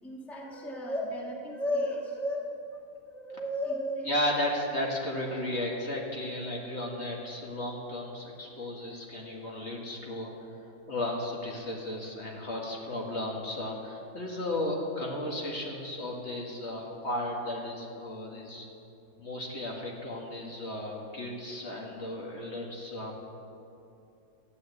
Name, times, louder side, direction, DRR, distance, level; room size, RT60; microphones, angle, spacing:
voice 1, 0.0-2.4 3.0-4.1, left 1 dB, ahead, -1 dB, 1.3 m, -33 dB
voice 2, 4.0-10.3 10.6-18.7 19.2-23.2, left 1 dB, 45° left, -2 dB, 2.1 m, -34 dB
12.5 x 9.8 x 8.2 m, 2.8 s
omnidirectional pair, 1.7 m